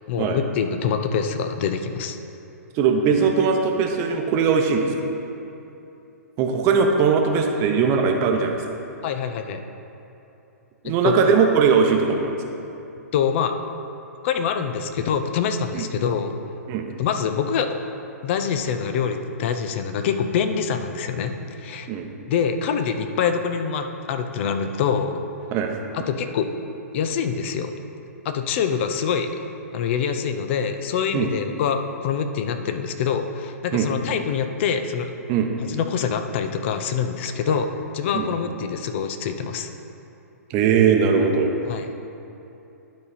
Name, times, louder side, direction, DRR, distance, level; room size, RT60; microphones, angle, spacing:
voice 1, 0.1-2.2 9.0-9.6 10.8-11.3 13.1-13.6 14.2-16.4 17.0-17.8 18.2-21.9 22.3-25.2 25.9-26.5 26.9-27.7 28.2-29.4 29.7-35.1 35.7-39.7 41.7-41.9, left 7 dB, 45° left, 7 dB, 0.6 m, -25 dB
voice 2, 2.7-4.9 6.4-8.6 10.8-12.4 15.7-15.9 16.7-16.9 21.9-22.1 25.5-25.7 31.1-31.3 33.7-33.9 35.3-35.5 37.5-37.6 38.1-38.3 40.5-41.5, right 6 dB, 35° right, 3 dB, 0.8 m, -20 dB
11.5 x 4.1 x 4.1 m, 2.9 s
hypercardioid pair, 125°, 9 cm